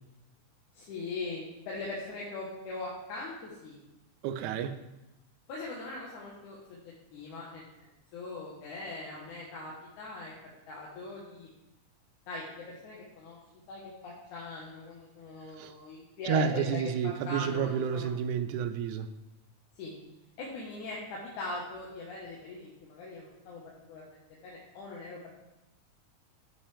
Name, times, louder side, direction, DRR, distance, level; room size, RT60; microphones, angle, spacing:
voice 1, 0.7-3.8 5.5-10.3 10.7-11.5 12.3-13.4 13.7-18.1 19.8-19.9 20.4-25.2, left 2 dB, 80° left, 2.7 m, -41 dB
voice 2, 4.2-4.8 15.6-15.7 16.3-19.1, right 7 dB, 80° right, 2.0 m, -30 dB
12.5 x 5.7 x 3.3 m
omnidirectional pair, 3.5 m